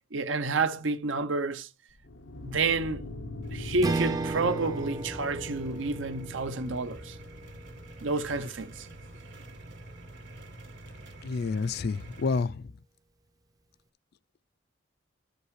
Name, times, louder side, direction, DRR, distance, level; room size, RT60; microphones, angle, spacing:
voice 1, 0.1-1.7 2.4-3.0 3.5-7.1 8.0-8.7, right 3 dB, 80° right, 0.7 m, -29 dB
sound 1, 1.9-9.2, left 2 dB, 90° left, 0.9 m, -42 dB
sound 2, 3.4-12.4, right 1 dB, 60° right, 1.9 m, -48 dB
Strum, 3.8-8.4, right 3 dB, 20° right, 0.5 m, -35 dB
voice 2, 11.2-12.7, left 4 dB, 55° left, 0.4 m, -29 dB
12.0 x 5.3 x 3.2 m
head